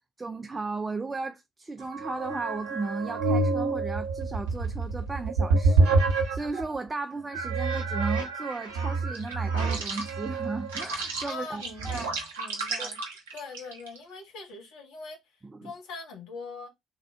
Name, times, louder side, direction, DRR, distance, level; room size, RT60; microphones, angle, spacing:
voice 1, 0.2-12.1 12.8-12.9 15.4-15.7, right 3 dB, 20° right, 0.3 m, -35 dB
sound 1, 1.8-6.8 7.3-14.0, right 3 dB, 70° right, 0.7 m, -28 dB
voice 2, 11.2-13.0 13.3-16.7, left 4 dB, 60° left, 0.8 m, -42 dB
3.5 x 2.4 x 3.2 m
figure-of-eight pair, 45°, 0 cm